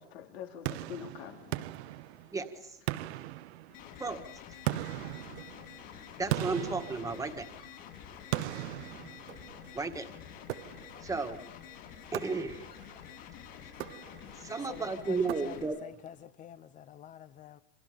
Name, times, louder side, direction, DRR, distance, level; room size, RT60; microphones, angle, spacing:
voice 1, 0.0-2.3 3.7-4.0, left 9 dB, 80° left, 3.4 m, -47 dB
sound 1, 0.7-2.5 2.9-4.0 4.7-7.7 8.3-9.7 10.5-11.1 12.1-12.9 13.7-14.5 15.3-16.0, right 15 dB, 85° right, 1.1 m, -38 dB
voice 2, 2.3-2.8 4.0-4.2 6.2-7.5 9.7-10.1 11.0-11.4 12.1-12.6 14.4-15.8, right 4 dB, 10° right, 1.8 m, -33 dB
sound 2, 3.7-15.6, left 9 dB, 60° left, 7.0 m, -49 dB
voice 3, 14.7-17.6, left 10 dB, 25° left, 0.8 m, -47 dB
28.5 x 25.5 x 5.2 m
supercardioid pair, 155°, 31 cm